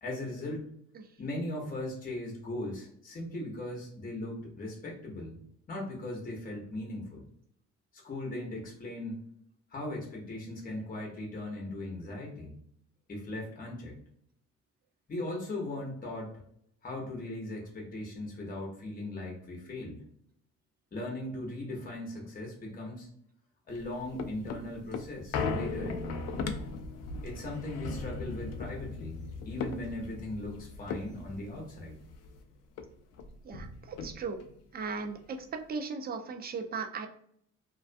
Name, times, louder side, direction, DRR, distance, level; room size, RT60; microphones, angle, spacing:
voice 1, 0.0-0.7 1.2-5.4 5.7-7.2 7.9-9.2 9.7-12.5 13.1-14.0 15.1-16.4 16.8-20.0 20.9-23.1 23.7-26.3 27.2-29.2 29.5-32.0, left 1 dB, 30° left, 0 dB, 0.8 m, -38 dB
sound 1, 23.7-32.4 32.8-32.9 33.1-34.5 35.0-35.1, left 4 dB, 55° left, 0.4 m, -38 dB
voice 2, 33.4-34.4 34.7-37.1, right 5 dB, 30° right, 6 dB, 0.4 m, -37 dB
2.3 x 2.2 x 2.5 m, 0.67 s
cardioid pair, 90°, 30 cm